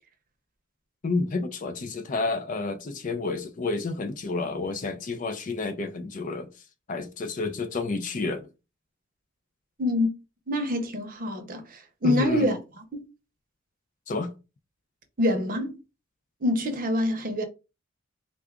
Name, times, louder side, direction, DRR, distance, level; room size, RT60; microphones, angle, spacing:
voice 1, 1.0-6.5 6.9-8.5 12.0-12.5 14.1-14.3, left 3 dB, 40° left, 0.4 m, -30 dB
voice 2, 9.8-10.1 10.5-13.0 15.2-15.8 16.4-17.4, left 1 dB, 40° right, 0.7 m, -26 dB
3.7 x 2.3 x 3.5 m
head